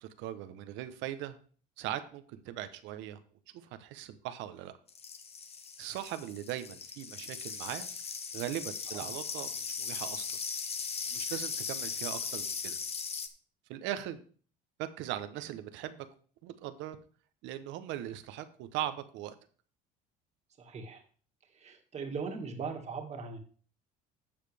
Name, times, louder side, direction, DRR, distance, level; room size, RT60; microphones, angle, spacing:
voice 1, 0.0-1.4 1.8-3.2 3.6-4.7 5.8-7.9 8.3-10.4 11.1-12.8 13.7-14.2 14.8-16.1 16.4-17.0 17.4-19.3, right 12 dB, 70° right, 10 dB, 1.0 m, -39 dB
sound 1, 4.9-13.3, left 5 dB, 30° left, 1.1 m, -38 dB
voice 2, 20.6-21.0 21.5-23.4, right 5 dB, 35° right, 3 dB, 2.1 m, -39 dB
12.0 x 7.4 x 3.5 m, 0.43 s
cardioid pair, 115°, 20 cm